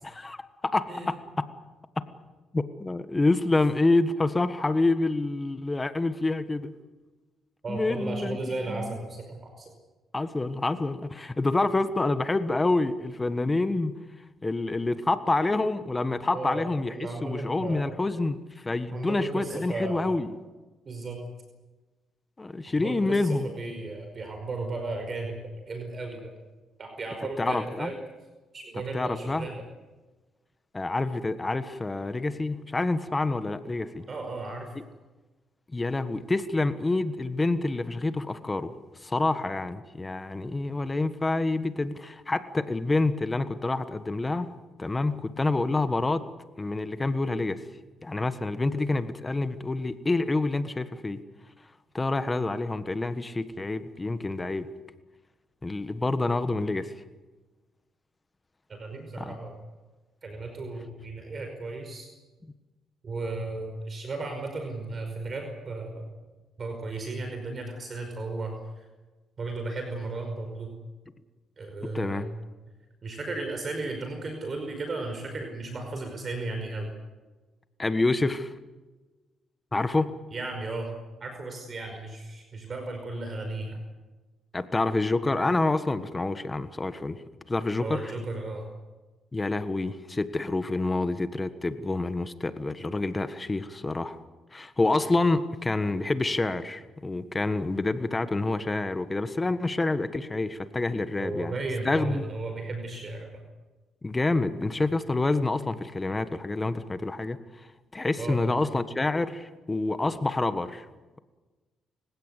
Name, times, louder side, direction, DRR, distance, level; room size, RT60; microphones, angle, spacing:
voice 1, 0.0-1.2 2.5-6.7 7.7-8.4 8.7-9.0 10.1-13.9 14.4-16.9 17.2-20.3 22.4-23.5 27.4-27.9 28.9-29.5 30.7-34.1 35.7-38.7 39.0-44.5 44.8-46.2 46.6-47.6 48.0-51.2 51.9-54.7 55.6-56.9 59.2-59.4 71.9-72.3 77.8-78.5 79.7-80.1 84.5-87.2 87.5-88.1 89.3-94.2 94.5-101.6 101.8-102.2 104.0-107.7 107.9-110.8, left 2 dB, 20° left, 11 dB, 1.4 m, -27 dB
voice 2, 7.6-9.7 16.3-16.6 16.9-17.9 18.9-20.1 20.8-21.2 22.7-23.2 23.6-26.3 26.8-28.0 28.5-29.6 34.1-34.7 58.7-59.5 60.2-62.1 63.0-66.0 66.6-68.8 69.4-70.7 71.6-72.2 73.0-76.9 80.3-80.9 81.2-83.8 87.8-88.6 101.2-103.4 108.2-108.5, right 3 dB, 40° right, 4 dB, 5.2 m, -35 dB
29.5 x 16.5 x 8.3 m, 1.2 s
cardioid pair, 90°, 0 cm